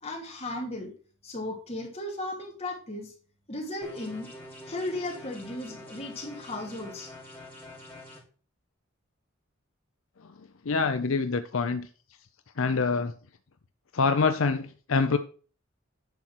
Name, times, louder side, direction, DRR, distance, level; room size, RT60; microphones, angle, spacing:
voice 1, 0.0-0.9 1.2-3.1 3.5-4.3 4.7-7.1, left 1 dB, 30° left, 0 dB, 2.7 m, -35 dB
sound 1, 3.8-8.2, left 1 dB, 10° left, 2.7 m, -46 dB
voice 2, 10.7-11.9 12.6-13.1 13.9-15.2, left 4 dB, 75° left, 9 dB, 0.6 m, -25 dB
10.5 x 4.4 x 6.1 m, 0.40 s
head